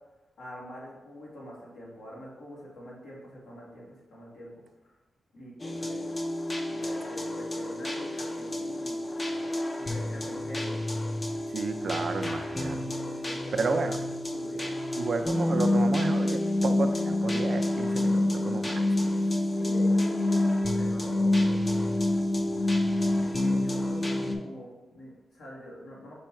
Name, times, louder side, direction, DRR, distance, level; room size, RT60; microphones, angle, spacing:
voice 1, 0.4-4.9 5.3-6.1 6.6-9.5 9.8-10.7 13.2-13.7 14.3-14.7 19.3-21.5 23.2-26.1, equal, 80° left, -4 dB, 1.5 m, -45 dB
sound 1, 5.6-24.4, left 1 dB, 30° left, 0.5 m, -28 dB
voice 2, 11.5-12.8 13.5-14.0 15.0-18.8, right 4 dB, 65° right, 6 dB, 0.4 m, -32 dB
5.4 x 2.2 x 4.4 m, 1.1 s
cardioid pair, 70°, 0 cm